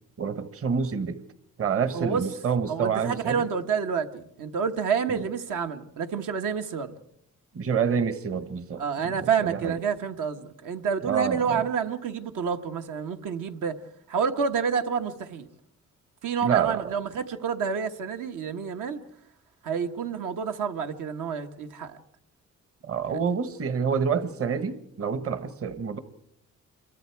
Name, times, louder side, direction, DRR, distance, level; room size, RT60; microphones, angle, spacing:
voice 1, 0.2-1.2 1.6-3.4 5.1-5.2 7.5-9.8 11.0-11.6 16.4-16.9 22.9-26.0, right 6 dB, 45° right, 1.3 m, -28 dB
voice 2, 2.7-6.9 8.8-13.8 14.1-15.5 16.2-19.0 19.6-22.0 23.1-23.2, right 6 dB, 80° right, 1.5 m, -29 dB
27.0 x 23.0 x 4.7 m
cardioid pair, 125°, 31 cm